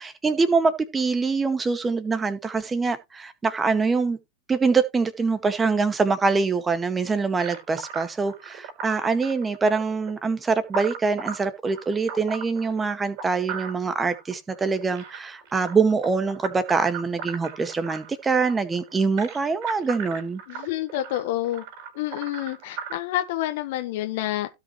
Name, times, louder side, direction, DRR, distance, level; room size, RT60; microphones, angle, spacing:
voice 1, 0.0-4.2 4.5-20.4, right 4 dB, 15° right, 1.9 m, -24 dB
sound 1, 7.4-23.0, right 6 dB, 50° right, 4.4 m, -38 dB
voice 2, 20.5-21.6 21.9-24.5, left 14 dB, 60° left, 1.3 m, -28 dB
16.5 x 5.7 x 3.2 m
hypercardioid pair, 90°, 0 cm